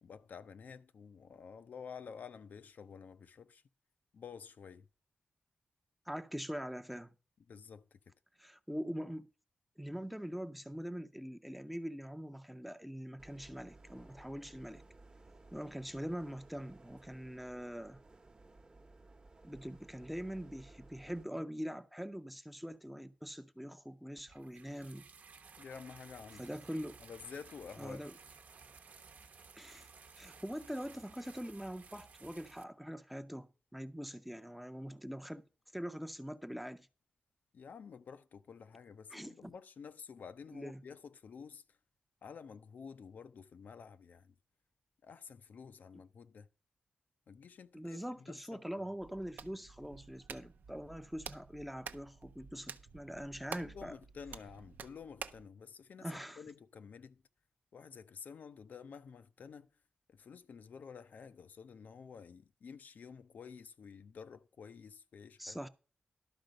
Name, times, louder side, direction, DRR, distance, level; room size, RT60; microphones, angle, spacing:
voice 1, 0.0-3.6 4.1-4.9 7.5-8.0 25.6-26.5 27.0-28.0 37.5-41.8 42.2-44.3 45.0-46.5 47.3-48.6 53.6-57.2 57.7-59.7 60.1-65.6, left 6 dB, 70° left, 0.6 m, -51 dB
voice 2, 6.1-7.1 8.4-9.3 9.8-14.8 15.5-18.0 19.4-25.0 26.4-27.0 27.8-28.1 29.6-29.9 30.1-35.5 35.7-36.9 39.1-39.5 40.5-40.8 45.9-46.0 47.7-53.9 56.0-56.4 65.4-65.7, equal, ahead, 0.6 m, -43 dB
sound 1, 13.2-21.2, right 2 dB, 30° right, 1.0 m, -59 dB
sound 2, 24.3-32.6, right 5 dB, 65° right, 1.0 m, -57 dB
Hands, 49.0-55.5, right 6 dB, 85° right, 0.7 m, -50 dB
12.0 x 4.9 x 6.4 m
wide cardioid pair, 130°, 3 cm